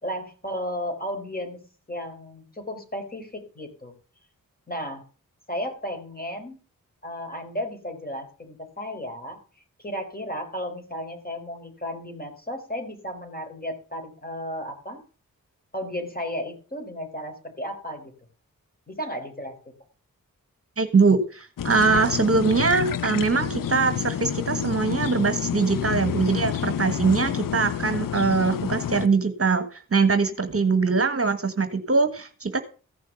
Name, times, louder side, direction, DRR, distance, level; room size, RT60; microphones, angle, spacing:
voice 1, 0.0-3.9 4.7-5.0 5.5-6.6 7.0-9.4 9.8-15.0 15.7-18.1 18.9-19.6, equal, 25° left, 4 dB, 4.5 m, -34 dB
voice 2, 20.8-32.6, right 4 dB, 40° right, 10 dB, 1.3 m, -22 dB
sound 1, 21.6-29.1, left 9 dB, 70° left, 0.6 m, -29 dB
15.5 x 6.2 x 7.0 m, 0.38 s
cardioid pair, 55°, 35 cm